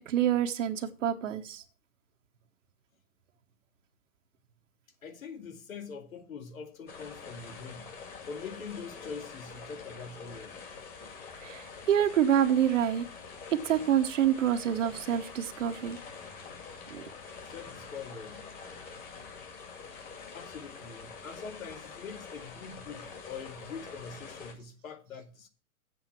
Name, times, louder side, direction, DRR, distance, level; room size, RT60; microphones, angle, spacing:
voice 1, 0.0-1.6 11.4-13.0 13.6-16.0 16.9-17.0, right 10 dB, 60° right, 1.1 m, -27 dB
voice 2, 5.0-7.9 8.3-10.6 17.4-18.4 20.3-25.5, left 5 dB, 70° left, 2.3 m, -43 dB
sound 1, 6.9-24.5, left 5 dB, 20° left, 2.3 m, -46 dB
8.7 x 7.9 x 5.9 m
hypercardioid pair, 145°, 43 cm